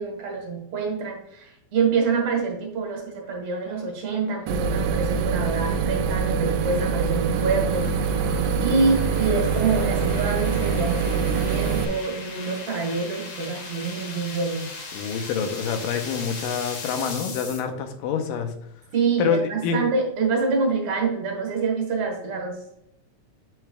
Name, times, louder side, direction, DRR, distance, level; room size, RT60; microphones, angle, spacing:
voice 1, 0.0-7.8 8.6-14.7 18.9-22.5, right 4 dB, 60° right, 1 dB, 2.5 m, -26 dB
sound 1, 3.7-17.6, left 3 dB, 50° left, 1.5 m, -39 dB
sound 2, 4.5-11.9, right 6 dB, 80° right, 2.0 m, -24 dB
voice 2, 14.9-18.5 19.2-19.8, left 6 dB, 85° left, 6 dB, 2.4 m, -26 dB
8.3 x 6.7 x 2.3 m, 0.78 s
omnidirectional pair, 3.9 m